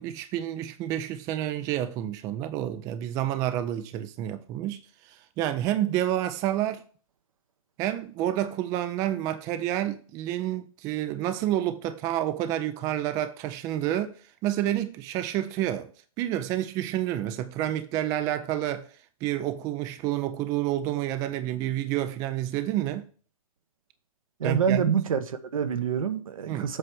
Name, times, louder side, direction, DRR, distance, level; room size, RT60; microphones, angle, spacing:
voice 1, 0.0-6.8 7.8-14.1 14.4-15.9 16.2-18.9 19.2-23.1 24.4-25.0 26.5-26.7, right 12 dB, 20° right, 0.4 m, -29 dB
voice 2, 24.4-26.8, right 7 dB, 70° right, 1.0 m, -26 dB
7.8 x 3.3 x 6.1 m
hypercardioid pair, 140°, 18 cm